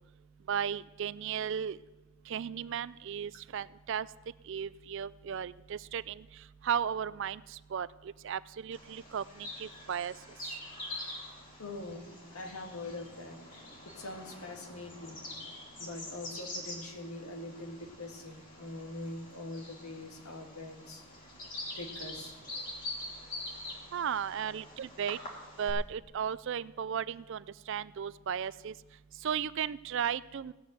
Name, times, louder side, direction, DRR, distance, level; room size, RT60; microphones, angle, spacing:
voice 1, 0.5-1.8 2.3-4.1 4.5-6.3 6.6-7.9 8.2-10.1 23.9-25.2 25.6-28.7 29.2-30.5, right 8 dB, 55° right, 18 dB, 0.3 m, -35 dB
Bird vocalization bird call bird song, 8.7-25.7, left 1 dB, 35° left, 3.0 m, -45 dB
voice 2, 11.6-15.2 15.8-21.0 21.8-22.3 24.4-24.5, left 2 dB, 85° left, 3 dB, 1.9 m, -43 dB
16.5 x 6.4 x 7.9 m, 1.1 s
head